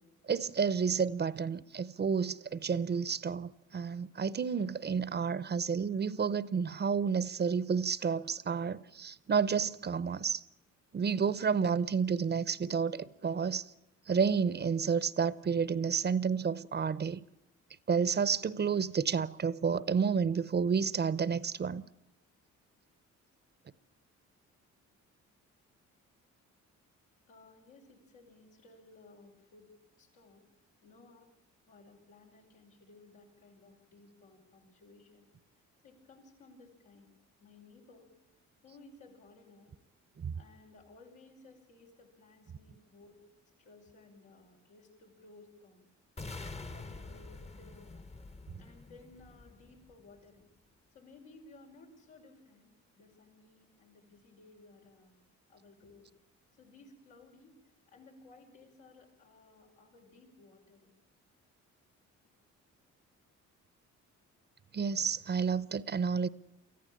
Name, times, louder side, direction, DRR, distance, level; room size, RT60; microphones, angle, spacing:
voice 1, 0.3-10.4 10.9-13.6 14.1-17.2 17.9-21.8 40.2-40.3 64.7-66.3, right 6 dB, 35° right, 0.7 m, -30 dB
voice 2, 27.3-29.7 30.0-30.5 30.8-31.3 31.7-35.3 35.8-37.1 37.4-38.2 38.6-39.7 40.3-43.2 43.6-45.9 46.6-47.9 48.6-50.5 50.9-55.2 55.5-56.1 56.5-57.5 57.9-61.0, left 3 dB, 90° left, 5.6 m, -58 dB
sound 1, 46.2-50.2, left 3 dB, 20° left, 0.9 m, -46 dB
24.0 x 14.5 x 8.7 m
cardioid pair, 90°, 30 cm